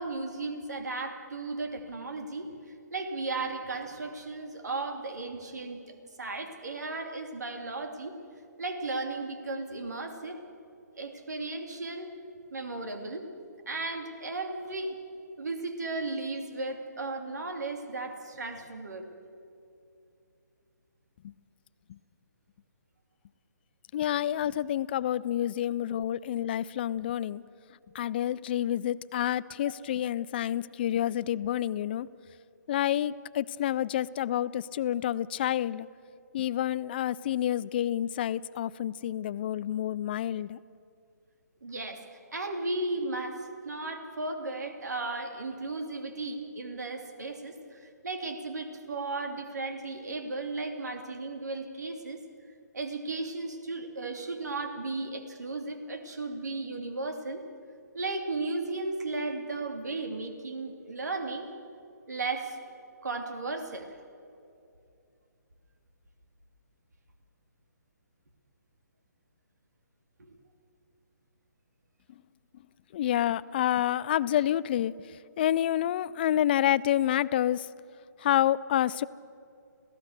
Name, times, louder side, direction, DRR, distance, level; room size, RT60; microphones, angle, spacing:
voice 1, 0.0-2.5 2.9-8.1 8.6-10.4 10.9-12.1 12.5-13.2 13.7-15.0 15.4-19.1 29.6-29.7 41.6-42.0 42.3-52.2 52.7-57.4 57.9-61.5 62.1-62.6 63.0-63.9 70.2-70.3, right 3 dB, 65° right, 5 dB, 2.9 m, -35 dB
voice 2, 23.9-27.4 27.9-32.1 32.7-35.9 36.3-40.6 72.9-77.7 78.2-79.1, left 11 dB, 35° left, 18 dB, 0.5 m, -28 dB
27.0 x 17.0 x 6.7 m, 2.6 s
figure-of-eight pair, 140°, 10 cm